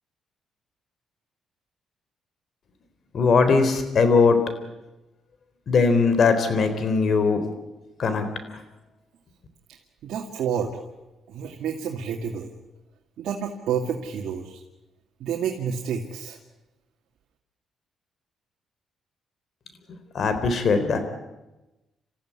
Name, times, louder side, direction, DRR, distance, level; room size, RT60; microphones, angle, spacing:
voice 1, 3.1-4.4 5.7-7.4 8.0-8.6 19.9-21.0, left 4 dB, 55° left, 10 dB, 3.9 m, -20 dB
voice 2, 10.0-10.8 11.3-12.5 13.2-14.6 15.2-16.4, right 7 dB, 75° right, 1 dB, 2.3 m, -29 dB
27.5 x 15.0 x 9.7 m, 1.0 s
cardioid pair, 90°, 0 cm